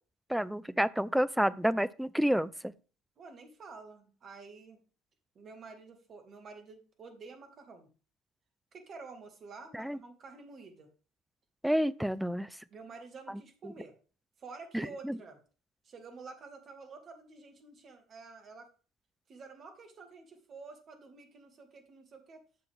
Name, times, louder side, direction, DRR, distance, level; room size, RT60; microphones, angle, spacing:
voice 1, 0.3-2.7 9.7-10.0 11.6-12.5 15.0-15.2, equal, ahead, 0.4 m, -29 dB
voice 2, 3.2-4.8 5.4-7.9 8.7-10.9 12.7-13.9 14.4-15.4 15.8-18.7 19.3-22.4, right 4 dB, 40° right, 2.1 m, -49 dB
9.1 x 6.9 x 3.5 m
figure-of-eight pair, 60°, 0 cm